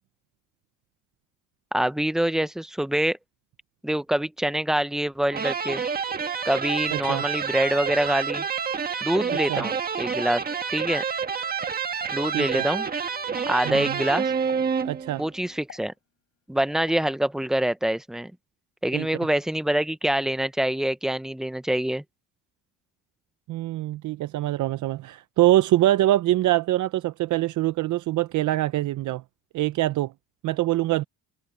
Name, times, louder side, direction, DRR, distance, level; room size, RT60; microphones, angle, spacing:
voice 1, 1.7-3.2 3.8-5.8 6.4-8.4 9.0-10.4 10.7-11.0 12.1-12.9 13.5-14.3 15.2-15.9 16.5-18.3 18.8-22.0, right 1 dB, ahead, 0.6 m, -25 dB
sound 1, 5.3-15.3, right 6 dB, 25° right, 1.7 m, -28 dB
voice 2, 6.9-7.2 9.3-9.6 12.3-12.7 13.7-14.0 14.8-15.2 18.9-19.1 23.5-29.2 29.5-30.1 30.4-31.0, right 15 dB, 60° right, 0.6 m, -24 dB
Explosion, 10.9-11.8 12.1-12.5 13.4-13.7 14.5-14.9 15.7-16.4 16.9-17.1, left 8 dB, 45° left, 5.3 m, -47 dB
cardioid pair, 140°, 34 cm